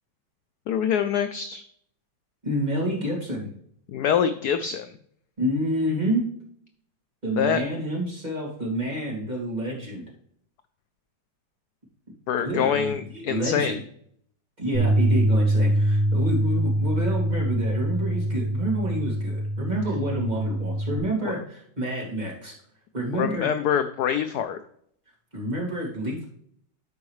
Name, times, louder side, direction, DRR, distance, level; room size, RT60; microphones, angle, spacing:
voice 1, 0.7-1.6 3.9-4.9 7.4-7.6 12.3-13.8 21.3-21.4 23.1-24.6, left 8 dB, 80° left, 9 dB, 0.9 m, -25 dB
voice 2, 2.4-3.5 5.4-6.3 7.2-10.1 12.4-13.8 14.6-22.5 22.9-23.5 25.3-26.2, right 1 dB, 20° right, -4 dB, 2.4 m, -28 dB
Bass guitar, 14.7-21.0, right 1 dB, 65° right, 1.9 m, -24 dB
12.5 x 4.7 x 3.2 m, 0.66 s
omnidirectional pair, 2.2 m